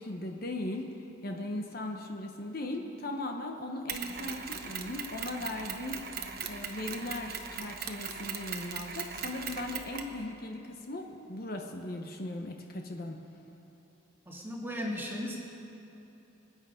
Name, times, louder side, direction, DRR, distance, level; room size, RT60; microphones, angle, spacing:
voice 1, 0.0-6.0 6.5-13.3, left 1 dB, 45° left, 3 dB, 0.9 m, -38 dB
Mechanisms, 3.9-10.2, right 6 dB, 45° right, 1.0 m, -39 dB
voice 2, 14.3-15.4, equal, 10° right, -2 dB, 1.9 m, -36 dB
25.5 x 9.2 x 5.1 m, 2.9 s
head